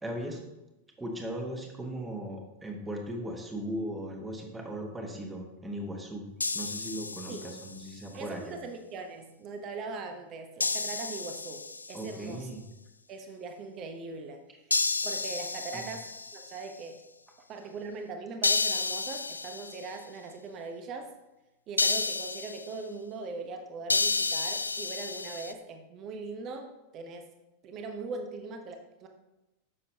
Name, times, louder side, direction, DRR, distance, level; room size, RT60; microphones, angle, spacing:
voice 1, 0.0-0.5 1.0-6.3 6.5-8.6 11.9-12.6 15.7-15.9, right 1 dB, 10° right, 2 dB, 1.4 m, -38 dB
sound 1, 6.4-7.9 10.6-12.2 14.7-16.6 18.4-19.9 21.8-22.7 23.9-25.5, left 3 dB, 80° left, 0.3 m, -31 dB
voice 2, 8.1-12.5 13.1-14.4 15.0-17.0 17.5-21.1 21.7-27.3 27.6-29.1, right 3 dB, 35° right, 6 dB, 0.9 m, -40 dB
9.6 x 6.9 x 2.8 m, 0.97 s
figure-of-eight pair, 90°, 0 cm